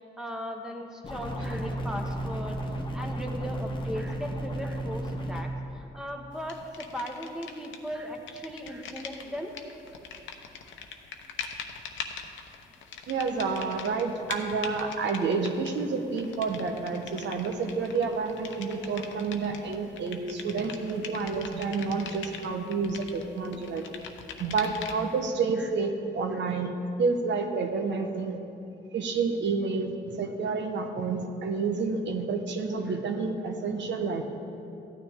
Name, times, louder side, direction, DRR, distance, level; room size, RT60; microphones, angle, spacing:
voice 1, 0.2-2.6 2.9-9.5 25.6-25.7 26.3-26.4 32.9-33.0, equal, 5° right, 2 dB, 1.3 m, -38 dB
sound 1, 1.0-5.4, right 1 dB, 25° left, 1.2 m, -33 dB
sound 2, 6.5-7.9 8.1-25.2, left 6 dB, 75° left, 0.9 m, -42 dB
voice 2, 13.1-23.8 24.4-26.7 27.0-28.4 28.9-34.2, right 4 dB, 65° right, 5 dB, 1.1 m, -29 dB
14.5 x 9.5 x 3.6 m, 2.7 s
cardioid pair, 90°, 20 cm